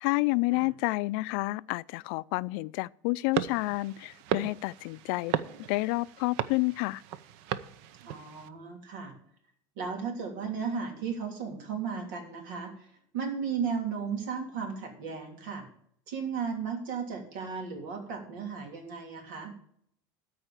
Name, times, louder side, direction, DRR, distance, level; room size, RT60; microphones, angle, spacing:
voice 1, 0.0-5.3 5.7-7.0, left 22 dB, 70° left, 0.4 m, -29 dB
sound 1, 3.3-8.5, right 10 dB, 65° right, 0.7 m, -36 dB
voice 2, 8.0-9.1 9.8-12.9 13.1-15.6 16.1-19.5, right 6 dB, 90° right, 3.1 m, -35 dB
13.5 x 4.8 x 8.8 m
cardioid pair, 145°, 10 cm